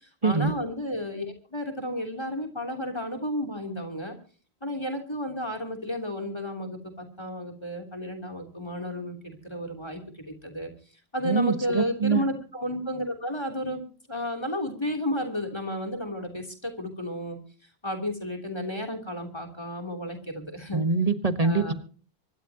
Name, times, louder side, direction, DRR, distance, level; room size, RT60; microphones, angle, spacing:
voice 1, 0.2-4.2 4.6-10.7 11.1-13.8 14.1-17.4 17.8-20.8 21.4-21.7, left 1 dB, 25° left, 6 dB, 3.4 m, -32 dB
voice 2, 11.2-12.2 20.7-21.7, right 4 dB, 35° right, 9 dB, 1.5 m, -24 dB
25.0 x 12.5 x 2.9 m, 0.40 s
omnidirectional pair, 1.0 m